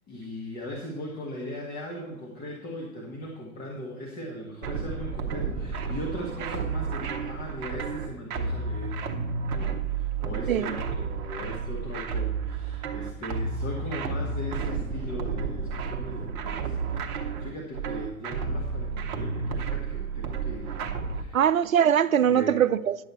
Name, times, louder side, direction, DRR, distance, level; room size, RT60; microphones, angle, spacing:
voice 1, 0.1-9.0 9.5-20.8 21.1-21.5 22.3-22.6, equal, 20° left, 1.7 m, -38 dB
sound 1, 4.6-21.2, right 5 dB, 30° right, 1.1 m, -31 dB
voice 2, 21.3-23.0, right 9 dB, 70° right, 0.6 m, -22 dB
11.0 x 8.1 x 4.4 m
figure-of-eight pair, 110°, 43 cm